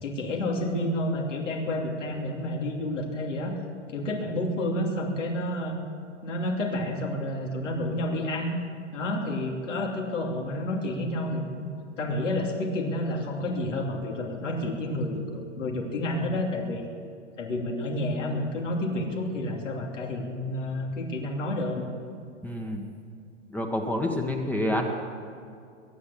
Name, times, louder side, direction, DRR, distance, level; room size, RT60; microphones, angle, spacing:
voice 1, 0.0-3.5 3.9-5.8 6.2-8.5 8.9-11.7 12.0-16.9 17.4-21.9, left 1 dB, 80° left, 0 dB, 2.9 m, -30 dB
voice 2, 22.4-22.8 23.5-24.9, left 1 dB, 5° left, 2 dB, 1.3 m, -28 dB
22.5 x 8.7 x 7.4 m, 2.3 s
hypercardioid pair, 125°, 37 cm